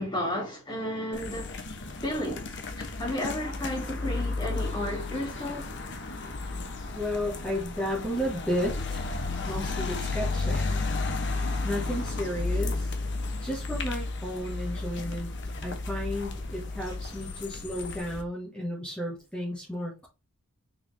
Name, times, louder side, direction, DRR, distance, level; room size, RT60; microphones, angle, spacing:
voice 1, 0.0-1.5 2.0-2.6 3.0-5.7 9.4-9.5, left 1 dB, 20° left, 2.9 m, -32 dB
sound 1, 1.1-18.2, left 3 dB, 55° left, 1.2 m, -33 dB
voice 2, 6.9-9.1 9.4-10.9 11.6-12.9 13.4-15.3 15.6-20.1, equal, 5° left, 1.7 m, -33 dB
6.7 x 4.3 x 3.5 m
head